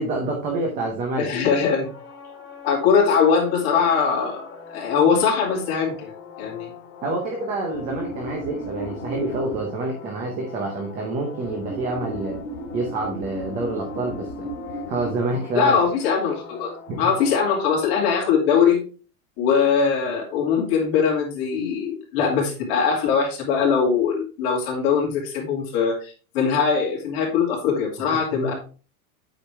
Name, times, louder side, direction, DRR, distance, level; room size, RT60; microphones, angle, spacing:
voice 1, 0.0-1.3 7.0-12.4 12.7-14.5 14.9-15.8 16.9-17.1 28.3-28.5, right 2 dB, 20° right, 1 dB, 0.7 m, -27 dB
voice 2, 1.2-1.9 2.6-6.1 6.4-6.7 15.5-18.8 19.4-28.5, left 6 dB, 45° left, -2 dB, 2.8 m, -21 dB
sound 1, 1.8-18.1, left 1 dB, 65° left, 2.8 m, -38 dB
8.4 x 5.1 x 3.4 m, 0.36 s
supercardioid pair, 180°, 44 cm